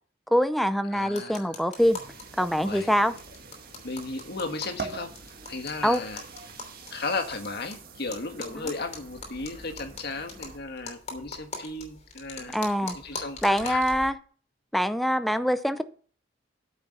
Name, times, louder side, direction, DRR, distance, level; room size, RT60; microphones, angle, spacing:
voice 1, 0.3-2.0 2.4-3.1 5.8-6.0 8.5-8.7 12.4-13.0 13.4-14.2 14.7-15.8, equal, ahead, 0.6 m, -24 dB
voice 2, 0.9-1.5 2.6-2.9 3.8-5.1 5.5-6.2 6.9-13.8, left 3 dB, 60° left, 1.6 m, -35 dB
sound 1, 1.1-2.2 2.5-2.6 2.8-2.9 3.2-7.7 8.1-14.1, left 3 dB, 40° left, 2.9 m, -41 dB
sound 2, 1.8-10.6, right 4 dB, 55° right, 1.8 m, -45 dB
8.9 x 7.2 x 5.5 m
head